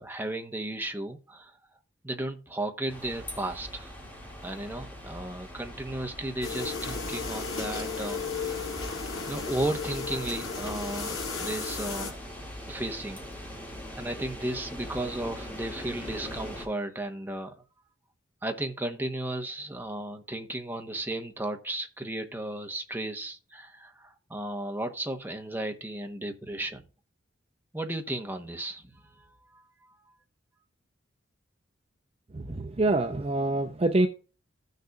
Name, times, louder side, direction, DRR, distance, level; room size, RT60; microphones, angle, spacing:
voice 1, 0.0-1.6 2.0-3.9 4.4-8.7 9.3-12.1 12.7-13.2 14.0-17.5 18.4-26.8 27.7-29.3 29.5-29.6, right 1 dB, 10° right, 1.0 m, -34 dB
sound 1, 2.9-16.7, equal, 10° left, 2.1 m, -42 dB
sound 2, 6.4-12.1, left 4 dB, 80° left, 3.3 m, -34 dB
voice 2, 32.3-34.1, right 2 dB, 30° right, 0.6 m, -26 dB
15.5 x 6.6 x 2.3 m
head